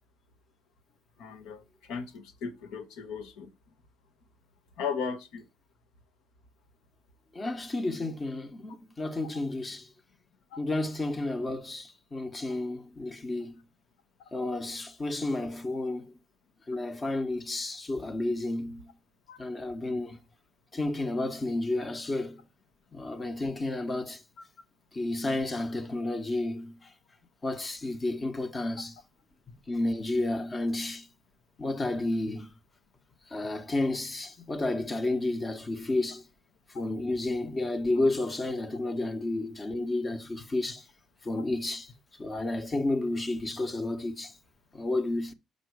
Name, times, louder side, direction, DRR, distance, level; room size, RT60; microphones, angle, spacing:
voice 1, 1.2-3.5 4.8-5.5 10.5-10.6 19.3-19.4 24.4-24.5, left 6 dB, 90° left, 1.0 m, -37 dB
voice 2, 7.3-9.9 10.6-13.6 14.3-16.1 16.7-18.9 19.4-20.2 20.7-22.4 22.9-24.2 24.9-26.7 27.4-28.9 29.7-31.1 31.6-32.5 33.3-36.2 36.7-40.8 41.2-41.9 42.2-44.3 44.7-45.3, left 2 dB, 30° left, 0.9 m, -31 dB
5.9 x 5.3 x 4.6 m
cardioid pair, 90°, 0 cm